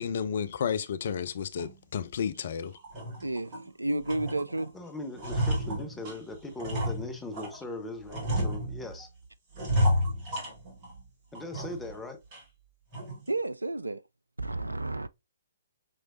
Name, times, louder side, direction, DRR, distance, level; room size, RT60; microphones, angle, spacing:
voice 1, 0.0-2.7, left 7 dB, 50° left, 0.5 m, -32 dB
sound 1, 1.6-1.7 2.2-2.3 2.8-3.7 4.1-4.7 5.0-7.6 8.1-9.1 9.5-11.0 11.3-12.0 12.3-12.4 12.9-13.3, equal, 30° right, 1.9 m, -31 dB
voice 2, 3.2-4.7 13.3-14.0 14.4-15.1, right 2 dB, 80° right, 0.3 m, -31 dB
voice 3, 4.7-9.1 11.3-12.2, left 2 dB, 10° left, 0.9 m, -39 dB
5.5 x 3.2 x 2.5 m
figure-of-eight pair, 125°, 0 cm